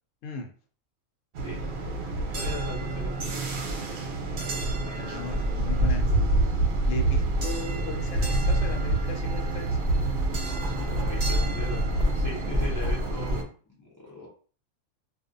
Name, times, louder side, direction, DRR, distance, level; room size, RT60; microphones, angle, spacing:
sound 1, 1.3-13.4, right 2 dB, 85° right, 1.1 m, -27 dB
voice 1, 2.1-3.4 10.3-14.3, left 2 dB, 20° left, 0.5 m, -39 dB
voice 2, 4.8-6.1 6.9-9.9, left 2 dB, 70° left, 0.9 m, -37 dB
Writing, 8.4-8.5 9.0-13.4, left 1 dB, 40° right, 0.6 m, -32 dB
2.4 x 2.4 x 2.5 m
omnidirectional pair, 1.5 m